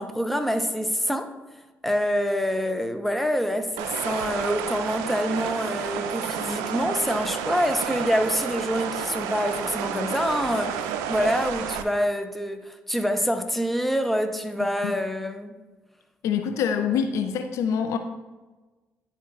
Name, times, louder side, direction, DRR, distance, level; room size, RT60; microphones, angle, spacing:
voice 1, 0.0-1.3 1.8-15.6, equal, 5° left, 0.8 m, -26 dB
sound 1, 3.8-11.8, right 8 dB, 90° right, 0.3 m, -31 dB
voice 2, 16.2-18.0, left 7 dB, 75° left, 0.4 m, -25 dB
10.5 x 4.3 x 2.4 m
supercardioid pair, 50°, 5 cm